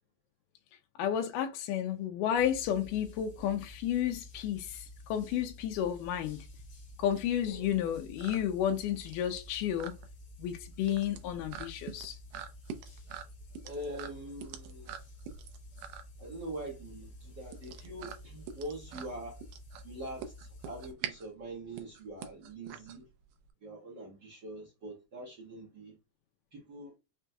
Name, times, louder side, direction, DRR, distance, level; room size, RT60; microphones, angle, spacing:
voice 1, 1.0-6.5 7.0-10.0 10.4-12.2, left 10 dB, 85° left, 2.1 m, -32 dB
sound 1, 2.3-20.9, left 1 dB, 65° left, 1.1 m, -51 dB
sound 2, 5.7-23.5, right 8 dB, 90° right, 2.3 m, -46 dB
voice 2, 13.6-15.0 16.2-19.4 19.8-23.1 23.6-26.0 26.5-26.9, right 1 dB, 70° right, 1.0 m, -43 dB
5.9 x 2.3 x 2.6 m
omnidirectional pair, 3.7 m